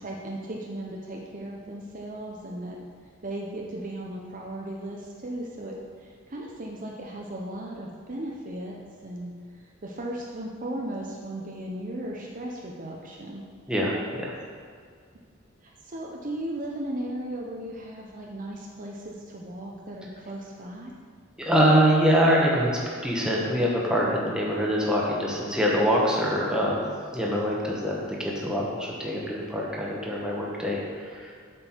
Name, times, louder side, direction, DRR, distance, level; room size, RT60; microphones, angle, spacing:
voice 1, 0.0-2.8 3.2-8.8 9.0-9.3 9.8-13.4 15.6-20.9 24.5-24.6, right 1 dB, 40° right, -1 dB, 0.7 m, -36 dB
voice 2, 13.7-14.3 21.4-22.7 23.0-26.9 27.1-31.3, equal, 5° right, -4 dB, 1.2 m, -24 dB
7.8 x 6.1 x 4.5 m, 2.1 s
head